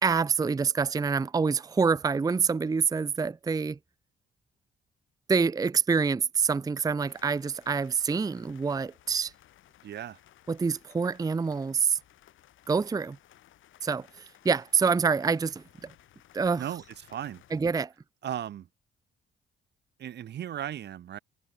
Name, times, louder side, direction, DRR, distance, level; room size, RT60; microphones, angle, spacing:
voice 1, 0.0-3.8 5.3-9.3 10.5-12.0 12.7-13.2 13.8-15.9 16.3-16.6 17.5-17.9, right 5 dB, 20° right, 0.5 m, -26 dB
sound 1, 7.1-17.6, left 13 dB, 80° left, 4.9 m, -58 dB
voice 2, 9.8-10.2 16.6-17.4 18.2-18.7 20.0-21.2, right 10 dB, 60° right, 0.9 m, -36 dB
cardioid pair, 90°, 20 cm